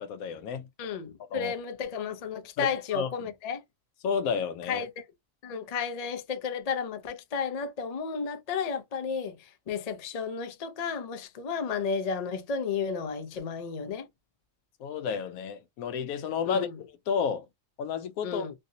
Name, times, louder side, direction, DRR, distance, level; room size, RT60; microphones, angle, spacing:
voice 1, 0.0-0.7 1.3-1.5 2.6-3.1 4.0-4.8 14.8-16.7 17.1-17.5 17.8-18.4, left 6 dB, 90° left, 1.0 m, -31 dB
voice 2, 0.8-3.6 4.7-5.0 5.4-14.1 16.5-16.8 18.2-18.5, left 6 dB, 50° left, 0.4 m, -33 dB
3.2 x 2.6 x 2.7 m
omnidirectional pair, 1.4 m